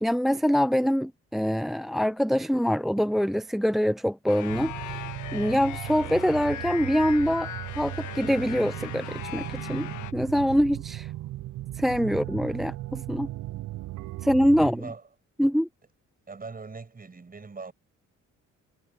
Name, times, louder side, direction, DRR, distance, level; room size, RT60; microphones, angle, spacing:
voice 1, 0.0-7.5 7.8-11.1 11.7-13.3 14.2-14.9 15.4-15.7, equal, ahead, 0.4 m, -25 dB
sound 1, 4.3-10.1, left 11 dB, 80° left, 1.4 m, -39 dB
sound 2, 4.5-14.7, right 16 dB, 70° right, 0.6 m, -37 dB
voice 2, 14.6-15.1 16.3-17.7, right 4 dB, 30° right, 6.3 m, -41 dB
cardioid pair, 90°, 30 cm